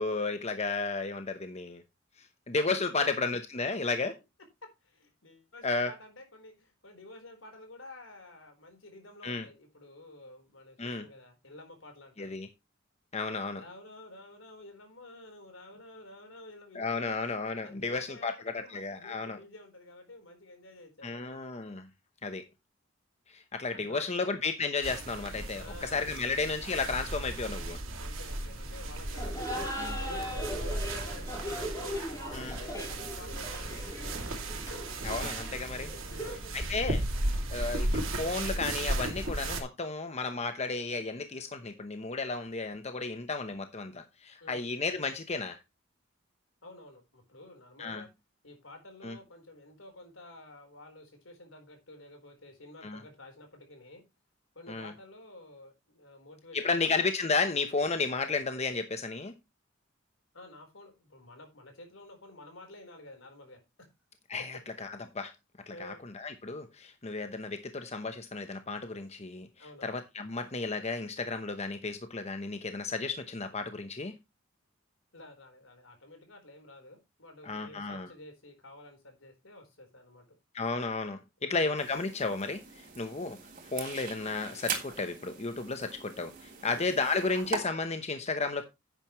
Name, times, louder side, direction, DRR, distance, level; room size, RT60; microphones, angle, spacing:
voice 1, 0.0-1.8 2.2-4.2 5.6-5.9 9.2-9.4 10.8-11.1 12.2-12.5 13.1-13.6 16.7-19.4 21.0-21.9 22.2-22.4 23.3-27.8 29.7-30.0 32.3-32.6 35.0-35.9 36.5-37.0 37.5-45.6 47.8-48.0 49.0-49.2 52.8-53.0 54.7-54.9 56.5-59.3 64.3-65.3 65.7-69.5 69.8-74.2 77.5-78.1 80.5-83.4 83.7-88.6, left 3 dB, 35° left, 1.0 m, -33 dB
voice 2, 3.0-3.3 4.6-12.4 13.6-17.2 17.6-21.4 23.7-24.4 25.6-26.3 28.0-32.2 32.6-34.5 35.7-36.5 44.4-44.7 46.6-48.1 48.4-54.0 54.5-56.9 60.3-63.6 65.7-66.0 69.6-70.0 75.1-80.4 81.4-81.8 86.6-86.9, left 2 dB, 75° left, 4.2 m, -51 dB
sound 1, 24.8-39.6, right 1 dB, 75° right, 2.7 m, -35 dB
Laughter, 29.1-36.6, equal, 15° left, 6.1 m, -39 dB
sound 2, 81.8-87.6, right 6 dB, 40° right, 3.1 m, -41 dB
11.0 x 9.1 x 3.1 m
head